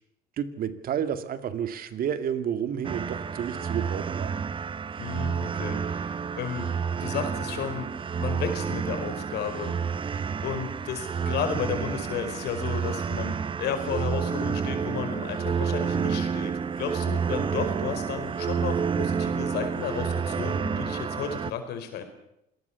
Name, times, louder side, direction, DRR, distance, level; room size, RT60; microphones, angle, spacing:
voice 1, 0.4-4.3, right 9 dB, 60° right, 11 dB, 2.2 m, -30 dB
sound 1, 2.8-21.5, right 6 dB, 30° right, 0.9 m, -29 dB
voice 2, 5.0-6.7 7.0-7.9 8.2-9.8 10.1-22.0, left 7 dB, 80° left, 8 dB, 4.8 m, -33 dB
26.5 x 19.0 x 7.1 m, 0.80 s
cardioid pair, 110°, 17 cm